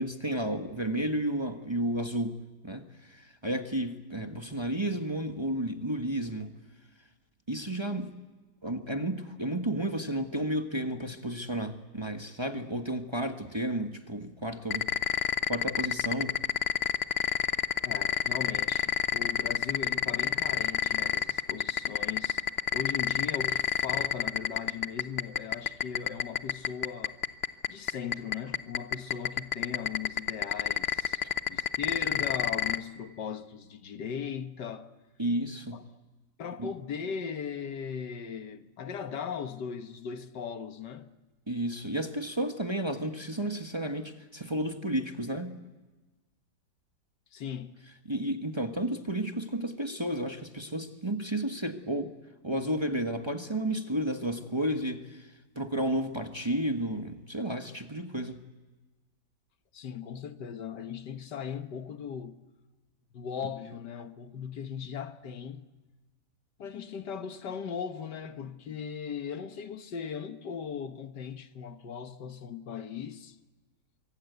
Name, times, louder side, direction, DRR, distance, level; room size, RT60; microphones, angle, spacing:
voice 1, 0.0-2.4 2.6-6.5 7.5-8.1 8.6-14.9 15.5-16.4 31.2-31.3 35.2-35.8 36.6-36.7 41.5-45.6 48.1-52.1 52.4-58.4, right 1 dB, 15° right, 1.4 m, -32 dB
sound 1, 14.7-32.8, left 8 dB, 45° left, 1.0 m, -27 dB
voice 2, 17.8-22.4 22.7-27.2 27.7-31.2 31.5-34.9 35.7-35.8 36.4-41.1 47.3-47.8 59.7-62.4 63.1-65.6 66.6-73.4, left 7 dB, 80° left, 1.9 m, -38 dB
25.5 x 24.5 x 8.1 m
omnidirectional pair, 1.8 m